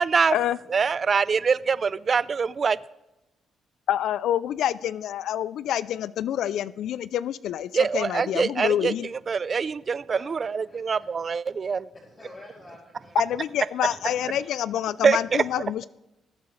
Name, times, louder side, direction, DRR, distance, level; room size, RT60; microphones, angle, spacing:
voice 1, 0.0-0.4 0.7-2.8 7.7-11.9 15.0-15.4, right 5 dB, 40° right, 0.4 m, -24 dB
voice 2, 3.9-9.1 13.1-15.9, left 11 dB, 75° left, 0.3 m, -27 dB
voice 3, 10.1-11.0 11.9-13.6 14.2-15.1, left 2 dB, 40° left, 3.0 m, -50 dB
19.5 x 8.4 x 3.2 m
cardioid pair, 90°, 0 cm